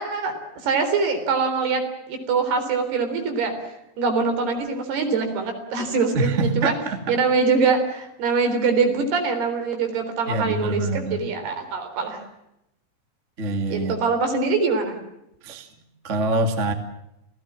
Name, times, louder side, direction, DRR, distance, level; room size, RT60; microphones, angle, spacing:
voice 1, 0.0-1.8 2.1-3.5 4.0-6.8 7.1-12.2 13.7-15.0, right 4 dB, 60° right, 6 dB, 5.6 m, -23 dB
voice 2, 6.1-7.1 10.3-11.2 13.4-14.0 15.4-15.7 16.0-16.7, right 2 dB, 30° right, 6 dB, 1.3 m, -25 dB
29.5 x 17.0 x 7.5 m, 0.85 s
omnidirectional pair, 5.4 m